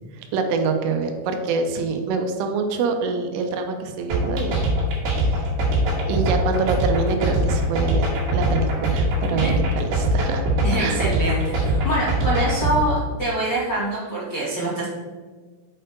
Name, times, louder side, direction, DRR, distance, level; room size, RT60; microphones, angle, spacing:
voice 1, 0.2-4.7 5.1-5.5 6.1-9.5 9.7-10.5 10.8-11.0, right 4 dB, 85° right, 5 dB, 3.1 m, -25 dB
sound 1, 4.1-12.8, right 1 dB, 55° right, 3.4 m, -22 dB
voice 2, 10.6-14.8, right 2 dB, 60° left, -10 dB, 1.0 m, -25 dB
7.6 x 4.4 x 5.1 m, 1.4 s
omnidirectional pair, 5.9 m